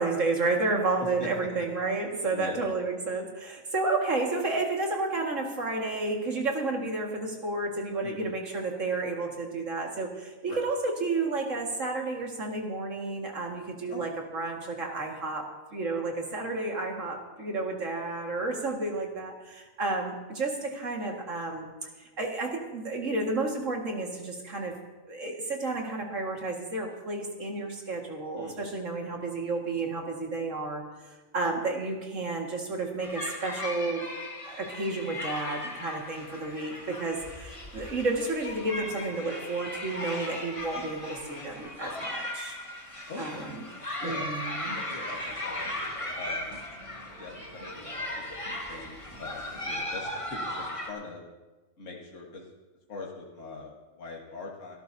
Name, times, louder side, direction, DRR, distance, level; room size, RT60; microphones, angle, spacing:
voice 1, 0.0-21.6 22.2-24.7 25.1-30.8 31.3-34.0 34.5-42.6 43.2-43.6 44.0-44.8, right 3 dB, 65° right, 0 dB, 2.3 m, -31 dB
voice 2, 8.0-8.3 10.5-10.6 13.9-14.1 28.4-28.8 43.1-43.5 44.0-44.4 44.6-46.5 47.2-51.3 51.8-52.5 52.9-54.8, left 3 dB, 65° left, -2 dB, 1.9 m, -43 dB
sound 1, 33.0-50.9, left 1 dB, 25° left, 1.7 m, -37 dB
sound 2, 45.1-50.7, right 1 dB, 40° right, 2.1 m, -50 dB
26.0 x 12.5 x 2.8 m, 1.2 s
omnidirectional pair, 1.4 m